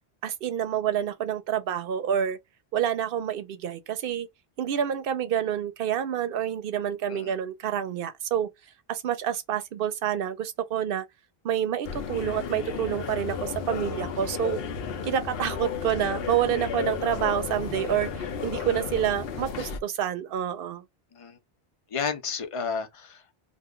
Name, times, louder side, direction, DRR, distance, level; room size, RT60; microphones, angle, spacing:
voice 1, 0.2-2.4 2.7-4.3 4.6-8.5 8.9-11.0 11.4-14.6 15.0-20.8, right 9 dB, 65° right, 0.7 m, -28 dB
sound 1, 11.8-19.8, left 6 dB, 75° left, 0.8 m, -33 dB
voice 2, 21.9-23.4, left 6 dB, 40° left, 0.6 m, -32 dB
2.4 x 2.2 x 3.6 m
omnidirectional pair, 1.0 m